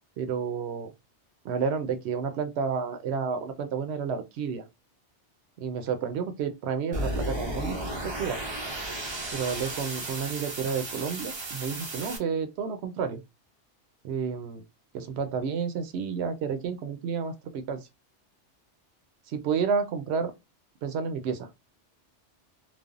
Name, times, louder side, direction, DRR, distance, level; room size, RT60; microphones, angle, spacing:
voice 1, 0.2-0.9 1.4-4.6 5.6-8.4 9.3-13.2 14.0-14.6 14.9-17.9 19.3-20.3 20.8-21.5, right 6 dB, 70° right, 0.8 m, -30 dB
sound 1, 6.9-12.2, right 1 dB, 40° right, 0.4 m, -34 dB
3.3 x 2.0 x 2.4 m
omnidirectional pair, 1.2 m